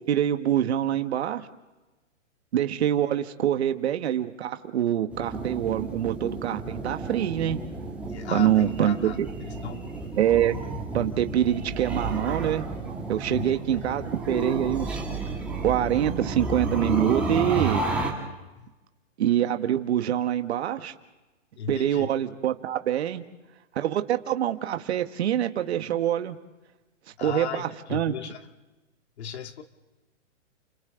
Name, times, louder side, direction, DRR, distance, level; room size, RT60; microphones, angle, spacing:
voice 1, 0.1-1.5 2.5-7.6 8.3-9.3 10.2-10.6 10.9-12.6 13.1-15.0 15.6-17.8 19.2-20.9 21.7-23.2 23.7-26.4 27.2-28.1, right 11 dB, 60° right, 8 dB, 1.4 m, -25 dB
sound 1, 5.1-18.1, right 3 dB, 5° right, 2.4 m, -32 dB
voice 2, 8.1-9.2 9.6-9.8 13.3-13.5 18.6-18.7 21.6-22.1 27.2-28.4 29.2-29.6, left 8 dB, 60° left, 6 dB, 2.0 m, -36 dB
30.0 x 27.5 x 3.8 m, 1.1 s
hypercardioid pair, 155°, 37 cm